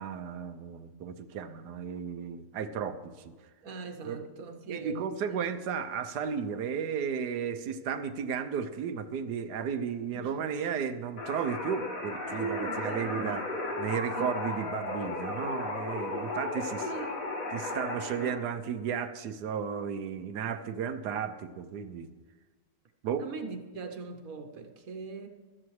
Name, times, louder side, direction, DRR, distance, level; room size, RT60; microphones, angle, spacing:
voice 1, 0.0-3.3 4.0-4.3 4.7-13.4 13.8-16.9 17.5-22.1 23.0-23.3, right 7 dB, 75° right, 10 dB, 1.3 m, -34 dB
voice 2, 3.6-5.0 5.3-5.4 10.1-10.3 12.3-13.4 14.1-14.9 16.8-17.2 23.2-25.3, right 4 dB, 60° right, 6 dB, 1.4 m, -40 dB
sound 1, 11.2-18.4, left 2 dB, 55° left, 2.2 m, -35 dB
16.5 x 12.5 x 3.2 m, 1.3 s
omnidirectional pair, 1.8 m